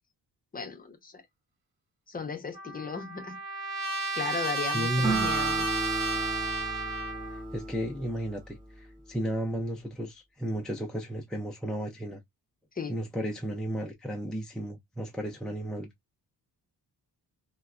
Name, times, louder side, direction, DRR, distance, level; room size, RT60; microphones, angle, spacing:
voice 1, 0.5-1.2 2.1-3.4 4.1-5.7 12.7-12.9, left 5 dB, 20° left, 0.7 m, -36 dB
Trumpet, 2.5-7.4, right 2 dB, 60° right, 1.2 m, -32 dB
voice 2, 4.7-5.3 7.3-12.2 12.9-15.9, right 1 dB, ahead, 0.3 m, -34 dB
Acoustic guitar, 5.0-8.6, right 3 dB, 20° right, 1.0 m, -33 dB
3.9 x 2.2 x 2.3 m
wide cardioid pair, 160°, 40 cm